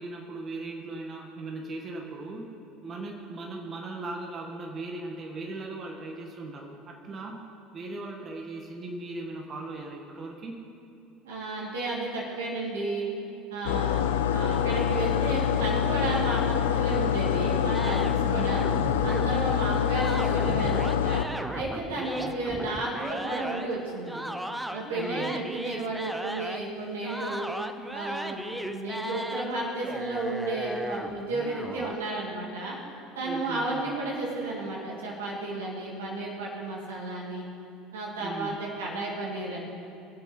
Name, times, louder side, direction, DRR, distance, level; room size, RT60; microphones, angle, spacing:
voice 1, 0.0-2.4 2.8-7.4 7.7-10.6 18.2-18.6 22.0-22.4 24.9-25.5 33.2-34.0 38.2-38.6, right 2 dB, 40° right, 0 dB, 1.7 m, -38 dB
voice 2, 11.2-13.1 13.5-18.6 19.0-21.2 21.5-24.2 24.7-27.5 27.9-32.8 33.1-37.4 37.9-39.6, right 2 dB, 85° right, -4 dB, 2.6 m, -33 dB
sound 1, 13.7-21.3, left 9 dB, 85° left, 0.6 m, -26 dB
sound 2, 17.7-19.5 19.9-23.7 24.1-26.7 27.0-29.5 29.8-31.9, right 1 dB, 5° right, 0.8 m, -36 dB
22.5 x 7.7 x 4.2 m, 2.8 s
hypercardioid pair, 75°, 0 cm